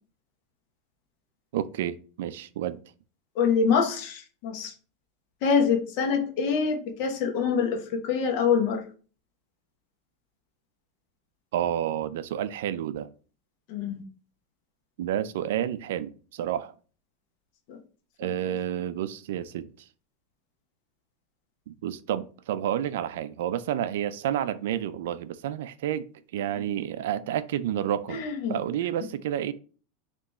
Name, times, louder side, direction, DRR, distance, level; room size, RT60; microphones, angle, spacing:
voice 1, 1.5-2.8 11.5-13.1 15.0-16.7 18.2-19.7 21.7-29.5, right 11 dB, 75° right, 0.3 m, -30 dB
voice 2, 3.4-4.7 5.4-7.8 8.0-8.8 13.7-14.0 17.7-17.8 28.1-28.5, left 6 dB, 55° left, 1.0 m, -25 dB
3.4 x 2.9 x 4.1 m
supercardioid pair, 140°, 0 cm